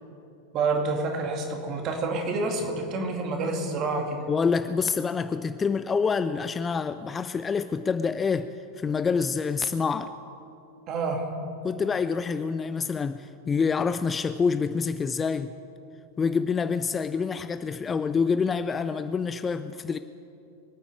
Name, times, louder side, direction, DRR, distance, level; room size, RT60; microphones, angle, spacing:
voice 1, 0.5-4.2 10.9-11.3, right 3 dB, 35° right, 3 dB, 2.4 m, -28 dB
voice 2, 4.3-8.5 8.8-10.1 11.6-15.5 16.2-20.0, left 5 dB, 20° left, 12 dB, 0.4 m, -27 dB
25.0 x 9.2 x 4.9 m, 2.8 s
figure-of-eight pair, 90°, 0 cm